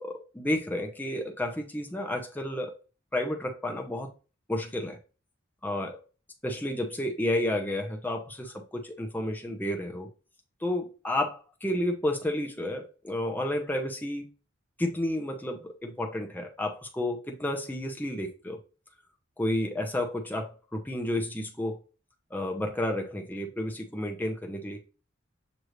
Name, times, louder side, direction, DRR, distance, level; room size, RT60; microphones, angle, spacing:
voice 1, 0.0-2.7 3.1-4.1 4.5-5.0 5.6-6.0 6.4-10.1 10.6-14.3 14.8-18.6 19.4-21.8 22.3-24.8, left 1 dB, 10° left, 0.7 m, -31 dB
6.5 x 2.6 x 3.1 m
head